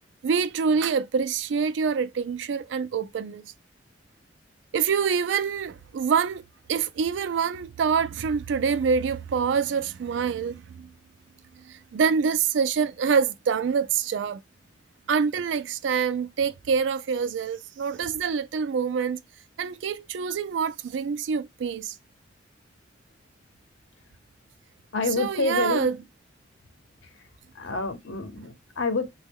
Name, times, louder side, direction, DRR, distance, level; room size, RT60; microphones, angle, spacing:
voice 1, 0.2-3.5 4.7-10.9 11.7-14.4 15.1-19.2 19.6-21.9 25.2-25.9, right 6 dB, 70° right, 0.3 m, -26 dB
voice 2, 24.9-25.9 27.0-27.1 27.5-29.1, left 3 dB, 90° left, 0.8 m, -28 dB
3.0 x 2.2 x 3.5 m
head